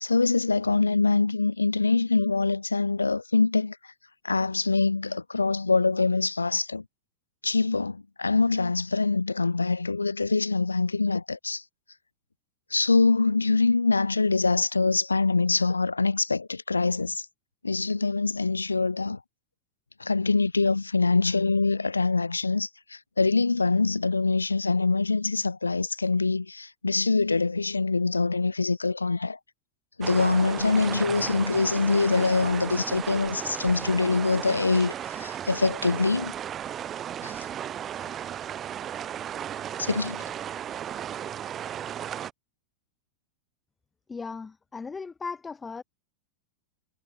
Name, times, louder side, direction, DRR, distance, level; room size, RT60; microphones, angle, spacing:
voice 1, 0.0-3.8 4.2-6.8 7.4-11.6 12.7-17.2 17.6-19.2 20.0-29.4 30.0-36.3 37.2-37.5 39.8-40.2, left 3 dB, 80° left, 1.3 m, -24 dB
sound 1, 30.0-42.3, right 10 dB, 25° right, 0.6 m, -35 dB
voice 2, 44.1-45.8, left 4 dB, 15° left, 1.5 m, -37 dB
figure-of-eight pair, 90°, 0 cm